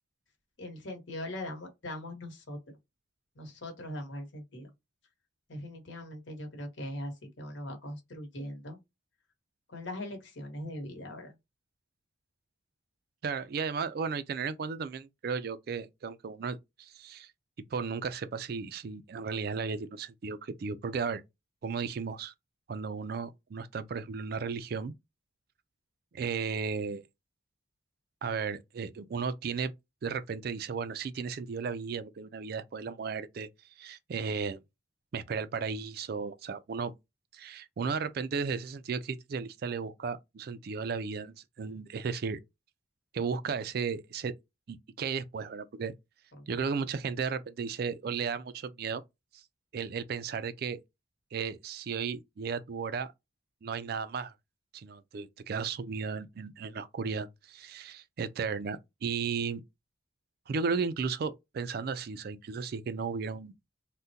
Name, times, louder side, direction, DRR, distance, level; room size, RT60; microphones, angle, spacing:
voice 1, 0.6-2.6 3.3-4.7 5.5-8.8 9.7-11.3 46.4-46.5, left 1 dB, 70° left, 1.1 m, -40 dB
voice 2, 13.2-17.3 17.7-21.2 21.6-22.3 22.7-24.9 26.1-27.0 28.2-29.7 30.0-33.5 33.8-34.6 35.1-36.9 37.3-42.4 43.1-44.3 44.7-45.9 46.5-49.0 49.7-50.8 51.3-53.1 53.6-54.3 54.7-59.6 60.5-63.5, right 5 dB, 50° right, 0.3 m, -34 dB
3.6 x 2.1 x 2.7 m
head